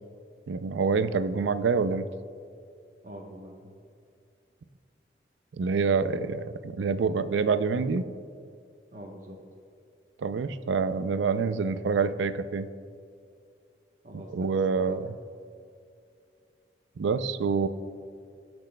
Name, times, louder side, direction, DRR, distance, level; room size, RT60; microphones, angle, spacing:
voice 1, 0.5-2.1 5.6-8.0 10.2-12.7 14.3-15.1 17.0-17.7, right 5 dB, 85° right, 12 dB, 0.4 m, -26 dB
voice 2, 3.0-3.7 8.9-9.4 14.0-15.0, equal, 45° right, 0 dB, 1.0 m, -44 dB
18.0 x 6.1 x 2.2 m, 2.4 s
head